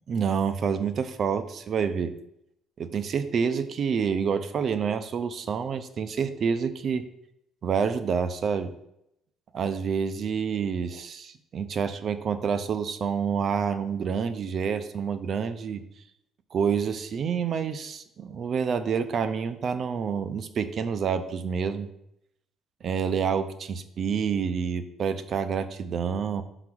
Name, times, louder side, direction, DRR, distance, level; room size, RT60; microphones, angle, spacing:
voice 1, 0.0-2.1 2.8-7.0 7.6-8.7 9.5-15.8 16.5-21.9 22.8-26.4, right 6 dB, 45° right, 10 dB, 0.5 m, -28 dB
5.8 x 3.9 x 6.1 m, 0.79 s
cardioid pair, 140°, 0 cm